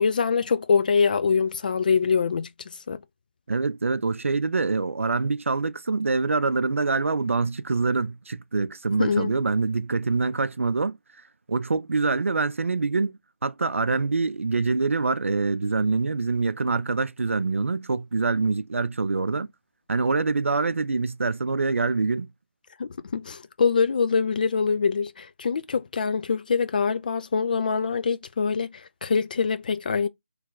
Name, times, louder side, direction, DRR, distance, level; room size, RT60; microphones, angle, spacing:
voice 1, 0.0-2.5 2.9-3.0 9.0-9.3 22.8-30.1, left 5 dB, 40° left, 0.4 m, -24 dB
voice 2, 3.5-11.0 11.5-19.5 19.9-22.3, right 3 dB, 75° right, 0.5 m, -25 dB
3.2 x 2.4 x 3.7 m
figure-of-eight pair, 160°, 7 cm